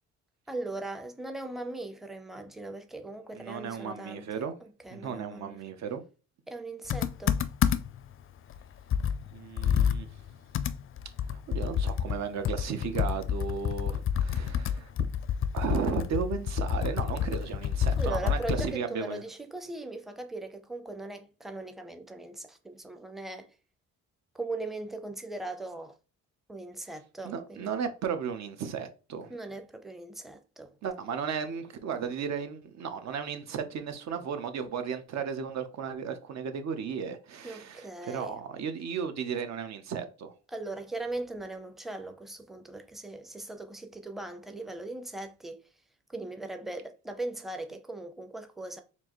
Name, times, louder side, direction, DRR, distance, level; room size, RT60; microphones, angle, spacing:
voice 1, 0.5-4.4 4.8-5.6 6.5-7.4 18.0-23.5 24.3-25.9 26.5-27.7 29.3-30.7 37.4-38.4 40.5-45.7 46.1-48.8, right 2 dB, ahead, 0.6 m, -39 dB
voice 2, 3.3-4.6 4.9-6.0 9.3-10.1 11.3-14.9 15.5-19.2 27.2-29.3 30.8-40.3, right 6 dB, 65° right, 0.8 m, -35 dB
Computer keyboard, 6.9-8.1 8.5-8.6 8.9-18.8, left 8 dB, 45° left, 0.4 m, -29 dB
4.5 x 2.7 x 3.0 m
cardioid pair, 90°, 30 cm